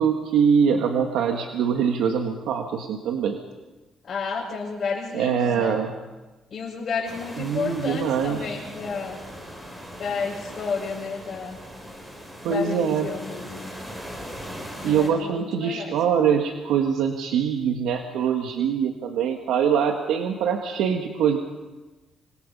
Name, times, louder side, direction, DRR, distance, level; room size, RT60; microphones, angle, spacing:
voice 1, 0.0-3.4 5.1-5.9 7.4-8.6 12.4-13.1 14.8-21.4, right 7 dB, 90° right, 4 dB, 1.6 m, -23 dB
voice 2, 4.1-5.8 6.5-9.2 10.0-11.6 12.4-13.7 14.8-16.0, left 5 dB, 50° left, -7 dB, 5.9 m, -31 dB
sound 1, 7.0-15.1, equal, 15° right, 6.3 m, -40 dB
27.0 x 21.5 x 5.5 m, 1.2 s
cardioid pair, 90°, 0 cm